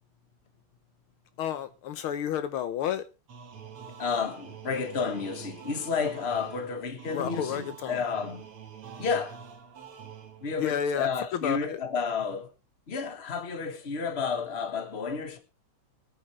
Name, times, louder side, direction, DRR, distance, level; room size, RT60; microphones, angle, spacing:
voice 1, 1.4-3.0 7.1-8.0 10.6-11.8, left 9 dB, 75° left, 1.6 m, -31 dB
sound 1, 3.3-10.7, right 7 dB, 90° right, 2.5 m, -46 dB
voice 2, 4.0-8.4 9.0-9.4 10.4-12.5 12.9-15.4, left 5 dB, 30° left, 1.6 m, -31 dB
24.0 x 8.9 x 3.1 m
omnidirectional pair, 2.4 m